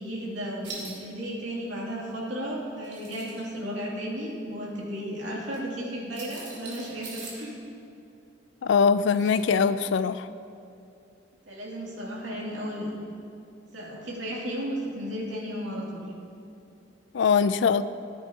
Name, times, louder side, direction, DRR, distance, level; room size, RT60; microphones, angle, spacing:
voice 1, 0.0-7.6 11.5-13.0 13.7-16.0, equal, 85° right, -5 dB, 2.6 m, -34 dB
sound 1, 0.6-1.0 2.7-3.4 5.5-5.6 6.1-7.5 9.1-9.5 9.9-10.0, right 3 dB, 65° right, 2.5 m, -42 dB
voice 2, 8.6-10.3 17.1-17.8, left 6 dB, 75° left, 14 dB, 0.3 m, -22 dB
14.5 x 9.6 x 2.8 m, 2.6 s
head